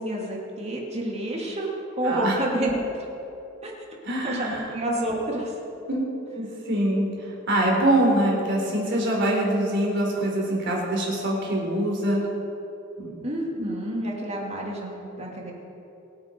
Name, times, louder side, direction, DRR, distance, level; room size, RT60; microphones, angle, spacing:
voice 1, 0.0-1.7 2.0-2.8 3.6-3.7 4.2-5.5 13.2-15.5, right 1 dB, 30° right, -2 dB, 2.7 m, -29 dB
voice 2, 2.0-2.4 4.0-4.7 5.9-6.0 6.3-12.3 13.0-13.2, right 1 dB, 60° right, -2 dB, 4.1 m, -24 dB
24.0 x 9.1 x 4.7 m, 2.9 s
head